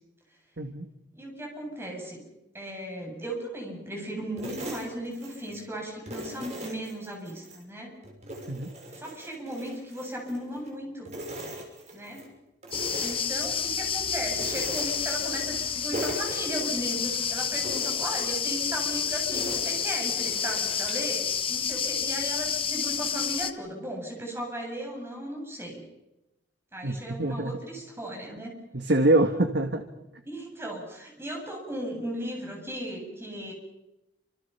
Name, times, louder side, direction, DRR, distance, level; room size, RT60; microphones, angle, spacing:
voice 1, 0.6-0.9 8.5-8.7 26.8-27.6 28.7-29.8, right 2 dB, 70° right, 6 dB, 1.7 m, -25 dB
voice 2, 1.1-2.2 2.5-8.0 9.0-11.1 11.9-12.3 13.0-25.8 26.7-28.6 30.3-33.5, right 1 dB, 15° right, 0 dB, 8.0 m, -36 dB
sound 1, 4.4-5.6 6.1-7.6 8.0-10.7 11.0-12.3 12.6-13.9 14.3-15.6 15.9-17.2 17.6-21.1, equal, 40° right, 6.5 m, -40 dB
sound 2, 12.7-23.5, left 7 dB, 30° left, 1.2 m, -29 dB
28.5 x 26.5 x 5.7 m, 0.93 s
head